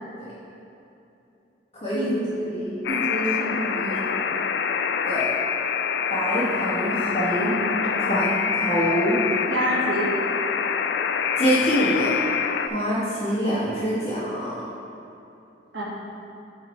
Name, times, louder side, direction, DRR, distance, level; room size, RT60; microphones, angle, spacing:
voice 1, 1.9-2.4 2.9-4.4 7.4-8.4 9.5-10.1 15.7-15.8, right 1 dB, 85° right, -5 dB, 1.7 m, -29 dB
Alarm, 2.8-12.7, left 7 dB, 65° left, 0.3 m, -26 dB
voice 2, 6.1-7.5 8.0-9.2 11.4-12.1 12.7-14.5, equal, 35° left, -14 dB, 1.6 m, -25 dB
8.6 x 4.1 x 4.4 m, 2.8 s
head